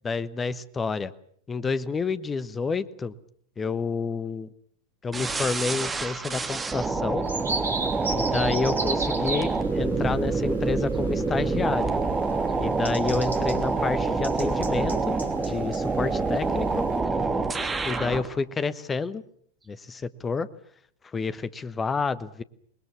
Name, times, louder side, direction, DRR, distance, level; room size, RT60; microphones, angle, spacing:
voice 1, 0.0-1.1 1.5-3.1 3.6-4.5 5.0-7.3 8.1-11.9 12.6-16.8 17.8-19.2 19.7-20.5 21.1-22.4, left 4 dB, 15° left, 15 dB, 1.2 m, -29 dB
sound 1, 5.1-18.3, right 3 dB, 15° right, 2.6 m, -27 dB
sound 2, 7.2-17.0, right 3 dB, 75° right, 2.7 m, -37 dB
27.0 x 21.0 x 7.5 m, 0.64 s
figure-of-eight pair, 90°, 0 cm